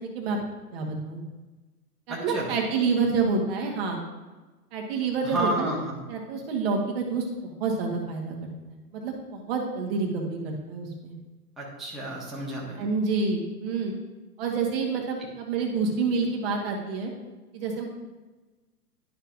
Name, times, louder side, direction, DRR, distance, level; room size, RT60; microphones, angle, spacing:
voice 1, 0.0-0.4 0.7-1.2 2.1-4.0 4.7-5.7 6.1-11.1 12.8-13.9 14.4-17.1 17.5-17.9, right 4 dB, 40° right, 1 dB, 1.4 m, -28 dB
voice 2, 2.1-2.5 5.2-6.0 11.6-12.8, right 1 dB, ahead, -6 dB, 1.1 m, -31 dB
11.0 x 5.6 x 2.5 m, 1.2 s
figure-of-eight pair, 115°, 48 cm